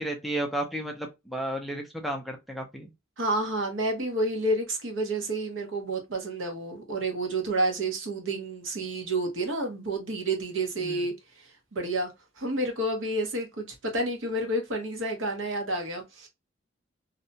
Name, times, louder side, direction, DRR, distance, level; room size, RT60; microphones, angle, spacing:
voice 1, 0.0-2.9 10.8-11.0, right 1 dB, ahead, 0.4 m, -33 dB
voice 2, 3.2-12.1 12.4-16.3, right 1 dB, 70° right, 0.9 m, -30 dB
2.6 x 2.2 x 2.6 m
head